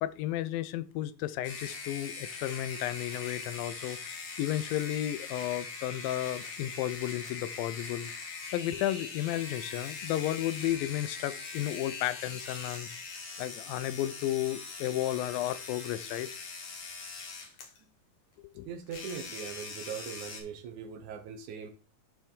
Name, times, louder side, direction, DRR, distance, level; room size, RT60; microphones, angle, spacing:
voice 1, 0.0-8.1 8.5-12.9 13.4-16.4 18.6-18.7, left 13 dB, 90° left, 2.4 m, -33 dB
sound 1, 1.4-17.8 18.9-20.4, left 4 dB, 60° left, 2.9 m, -42 dB
voice 2, 18.7-21.7, right 7 dB, 75° right, 2.0 m, -41 dB
11.5 x 4.5 x 3.7 m
omnidirectional pair, 4.0 m